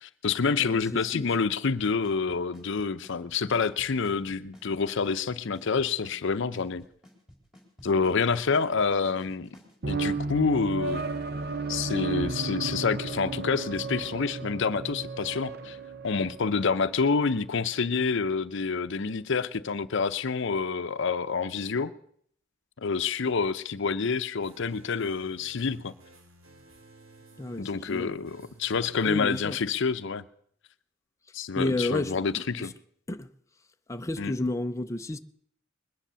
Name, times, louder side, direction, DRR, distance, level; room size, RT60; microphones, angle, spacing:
voice 1, 0.0-6.9 7.8-9.6 9.9-11.1 11.7-15.8 16.0-21.9 22.8-25.9 27.6-30.2 31.3-32.7 34.2-34.3, left 5 dB, 65° left, 0.6 m, -28 dB
voice 2, 0.6-1.3 27.4-28.2 29.0-29.6 31.5-32.7 33.1-33.3 33.9-35.2, left 2 dB, 15° left, 0.5 m, -31 dB
Drum kit / Snare drum / Bass drum, 1.8-9.7, equal, 5° right, 4.0 m, -52 dB
sound 1, 9.8-17.2, right 4 dB, 55° right, 0.9 m, -33 dB
sound 2, 24.4-29.8, right 2 dB, 80° right, 2.4 m, -55 dB
20.5 x 10.5 x 6.8 m
head